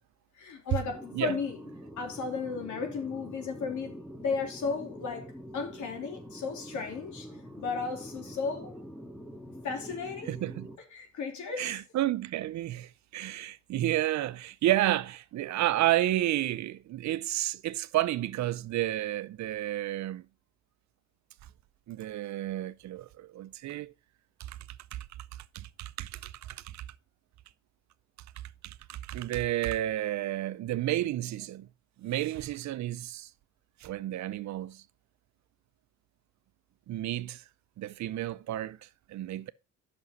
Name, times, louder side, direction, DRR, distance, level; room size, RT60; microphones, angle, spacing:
voice 1, 0.4-1.6 2.0-7.3 7.6-8.7 9.6-10.3 10.9-11.8, left 5 dB, 75° left, 3.1 m, -34 dB
sound 1, 0.9-10.8, equal, ahead, 1.7 m, -45 dB
voice 2, 10.3-10.7 11.6-20.2 21.9-23.9 24.5-24.6 24.9-25.0 25.5-26.8 28.6-31.7 32.0-33.3 33.8-34.8 36.9-37.4 37.8-38.8 39.1-39.5, right 14 dB, 65° right, 0.6 m, -31 dB
8.1 x 6.2 x 5.3 m
cardioid pair, 90°, 30 cm